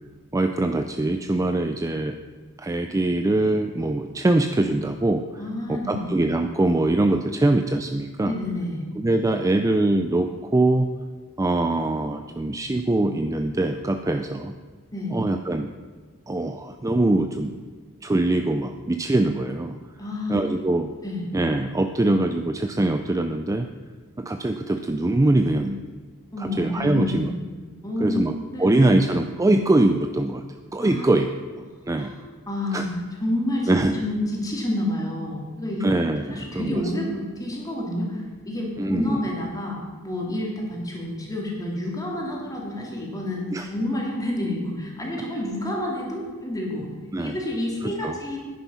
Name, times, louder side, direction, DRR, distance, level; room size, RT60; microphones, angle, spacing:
voice 1, 0.3-2.2 2.6-5.2 5.7-8.3 9.0-10.9 11.4-14.5 15.1-15.7 16.3-17.6 18.0-19.8 20.3-20.9 21.3-23.7 24.2-25.8 26.4-27.3 28.0-28.3 28.6-30.4 30.7-31.3 31.9-32.1 32.7-32.9 33.7-34.0 35.8-36.8 38.8-39.3 43.5-43.7 47.1-47.4 47.8-48.2, right 2 dB, 15° right, 7 dB, 0.4 m, -23 dB
voice 2, 5.4-6.1 8.2-8.8 14.9-15.2 20.0-20.4 21.0-21.2 26.3-27.3 27.8-28.3 28.5-29.0 30.8-31.1 32.0-32.2 32.5-35.9 36.3-43.4 43.7-46.9 47.2-48.4, left 1 dB, 15° left, -2 dB, 2.6 m, -29 dB
10.5 x 9.9 x 5.6 m, 1.5 s
head